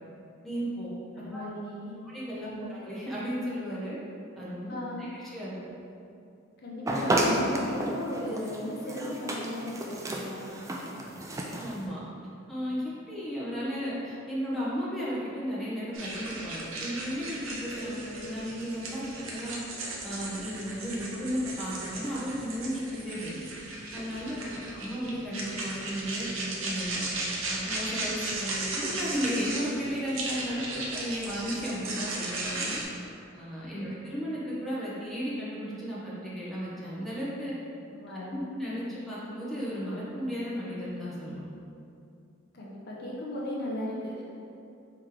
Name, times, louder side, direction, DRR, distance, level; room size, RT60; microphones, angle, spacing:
voice 1, 0.4-0.9 1.2-1.4 2.0-4.0 4.4-5.5 11.5-12.0 12.5-19.6 20.0-23.4 23.9-27.1 27.5-32.8 33.3-37.5 38.1-41.4, equal, ahead, -9 dB, 0.9 m, -34 dB
voice 2, 1.2-1.9 2.5-2.6 4.7-5.1 6.6-10.5 17.8-18.0 24.2-24.7 27.9-28.1 32.6-32.7 33.7-33.8 37.9-38.5 42.5-44.3, left 1 dB, 50° left, -4 dB, 0.6 m, -36 dB
sound 1, 6.9-11.8, right 1 dB, 15° right, 0.3 m, -31 dB
sound 2, 15.9-32.8, right 2 dB, 75° right, 0.7 m, -36 dB
4.7 x 3.0 x 3.7 m, 2.6 s
head